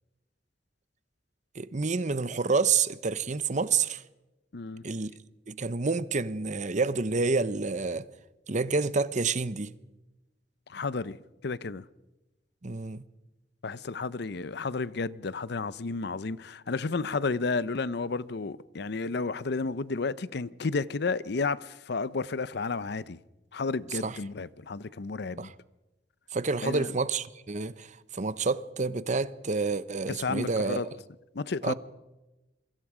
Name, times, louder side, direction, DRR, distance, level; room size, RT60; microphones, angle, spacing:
voice 1, 1.5-4.0 4.8-5.1 5.5-8.0 8.5-9.7 12.6-13.1 24.0-24.2 25.4-25.5 26.3-30.8 31.6-31.7, right 4 dB, 45° right, 0.8 m, -28 dB
voice 2, 4.5-4.8 10.7-11.2 11.4-11.8 13.6-23.2 23.5-25.5 26.6-26.9 30.1-31.0 31.3-31.7, left 4 dB, 65° left, 0.7 m, -32 dB
27.5 x 23.0 x 5.0 m
head